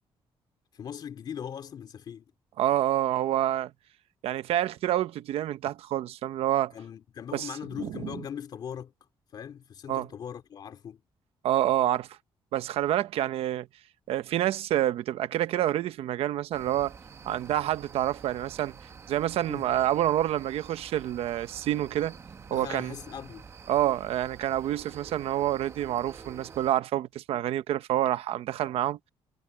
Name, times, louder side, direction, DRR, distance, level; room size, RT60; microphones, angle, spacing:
voice 1, 0.7-2.3 6.7-8.9 9.3-11.0 19.5-19.8 22.5-23.5, left 8 dB, 45° left, 2.8 m, -40 dB
voice 2, 2.6-3.7 4.2-6.7 7.3-7.5 7.8-7.9 9.9-10.1 11.4-12.1 12.5-13.7 14.1-16.9 17.2-18.7 19.1-22.1 22.5-22.9 23.7-29.0, right 13 dB, 85° right, 1.0 m, -27 dB
sound 1, 16.5-26.7, right 5 dB, 30° right, 1.0 m, -48 dB
cardioid pair, 180°, 10 cm